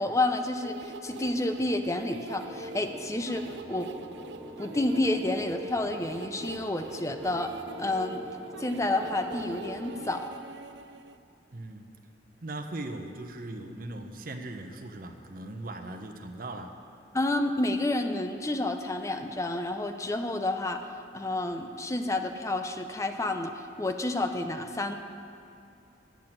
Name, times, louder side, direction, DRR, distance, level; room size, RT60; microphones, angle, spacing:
voice 1, 0.0-3.9 4.6-7.5 7.8-8.2 8.6-10.2 17.1-20.8 21.1-23.5 23.8-24.9, left 2 dB, 15° left, 6 dB, 0.6 m, -29 dB
sound 1, 0.6-11.2, right 5 dB, 75° right, 0.4 m, -44 dB
sound 2, 2.3-10.0, equal, 5° right, 1.5 m, -45 dB
voice 2, 11.5-11.9 12.4-16.7, right 2 dB, 50° right, 5 dB, 0.9 m, -39 dB
10.5 x 6.1 x 8.9 m, 2.7 s
head